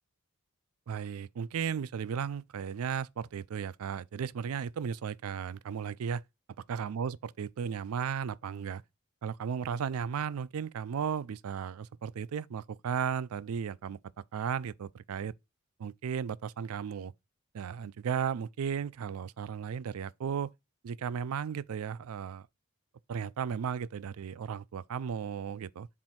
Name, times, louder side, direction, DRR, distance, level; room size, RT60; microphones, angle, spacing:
voice 1, 0.9-6.2 6.7-8.8 9.2-14.0 14.3-15.3 15.8-17.1 17.5-20.5 20.8-22.5 23.1-25.9, right 7 dB, 85° right, 0.4 m, -35 dB
7.5 x 2.6 x 5.6 m
head